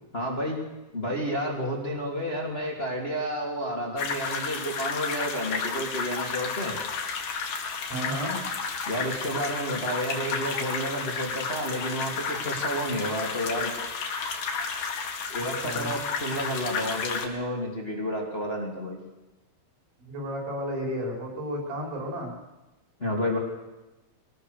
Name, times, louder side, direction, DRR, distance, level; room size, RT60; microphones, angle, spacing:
voice 1, 0.1-0.6 0.9-6.8 8.9-13.7 15.3-19.0 23.0-23.4, equal, 15° left, -1 dB, 2.5 m, -30 dB
sound 1, 4.0-17.3, left 5 dB, 55° left, 3.1 m, -32 dB
voice 2, 7.9-8.4 15.6-15.9 20.0-22.3, equal, 85° right, 0 dB, 7.3 m, -32 dB
22.0 x 19.0 x 6.6 m, 1.0 s
omnidirectional pair, 5.1 m